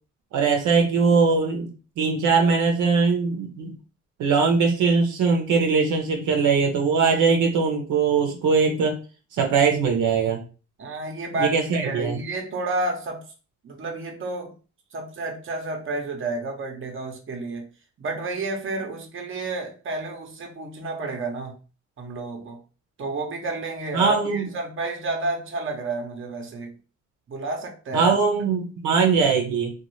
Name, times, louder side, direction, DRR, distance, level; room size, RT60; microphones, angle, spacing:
voice 1, 0.3-1.7 2.0-3.7 4.2-9.0 9.3-10.4 11.4-12.2 23.9-24.5 27.9-29.7, right 5 dB, 80° right, 0.8 m, -21 dB
voice 2, 10.8-13.3 13.6-14.5 14.9-17.7 18.0-21.6 22.0-22.6 23.0-26.7 27.3-28.1, right 2 dB, 40° right, 0.9 m, -30 dB
2.6 x 2.4 x 3.0 m
cardioid pair, 90°, 30 cm